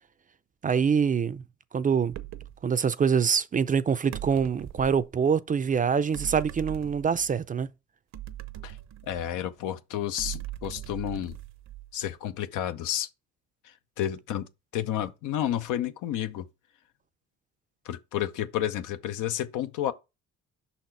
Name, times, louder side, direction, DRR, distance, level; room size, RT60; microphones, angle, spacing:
voice 1, 0.6-1.4 1.7-2.2 2.6-7.7, right 6 dB, 30° right, 0.4 m, -25 dB
sound 1, 2.1-2.6 4.1-5.1 6.1-7.4 8.1-9.5 10.2-12.1, right 14 dB, 65° right, 0.6 m, -40 dB
voice 2, 9.1-11.3 11.9-13.1 14.0-16.5 17.9-19.9, left 11 dB, 90° left, 0.7 m, -31 dB
5.7 x 4.2 x 4.5 m
cardioid pair, 90°, 30 cm